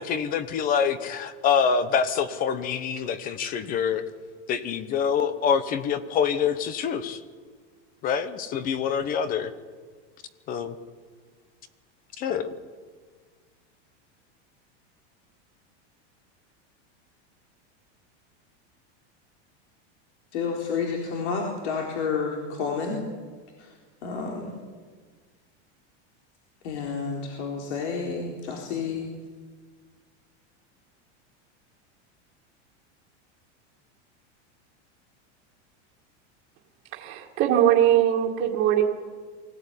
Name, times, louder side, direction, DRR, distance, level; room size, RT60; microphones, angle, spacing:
voice 1, 0.0-4.0 4.5-7.2 8.0-9.5 10.5-10.7 12.2-12.5, left 7 dB, 25° left, 13 dB, 1.0 m, -26 dB
voice 2, 20.3-23.0 24.0-24.5 26.6-29.1, left 5 dB, 70° left, 0 dB, 4.0 m, -30 dB
voice 3, 36.9-38.8, right 11 dB, 30° right, -3 dB, 2.2 m, -21 dB
24.0 x 16.5 x 9.9 m, 1.5 s
supercardioid pair, 175°, 35 cm